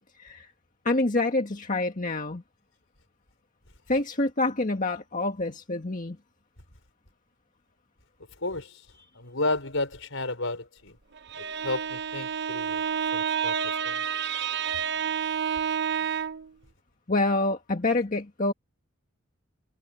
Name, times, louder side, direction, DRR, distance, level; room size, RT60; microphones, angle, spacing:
voice 1, 0.9-2.4 3.9-6.2 17.1-18.5, left 2 dB, 40° left, 1.7 m, -27 dB
voice 2, 8.4-8.8 9.1-11.0 11.4-14.0, left 2 dB, 70° left, 6.1 m, -32 dB
Bowed string instrument, 11.2-16.5, right 7 dB, 60° right, 1.0 m, -29 dB
head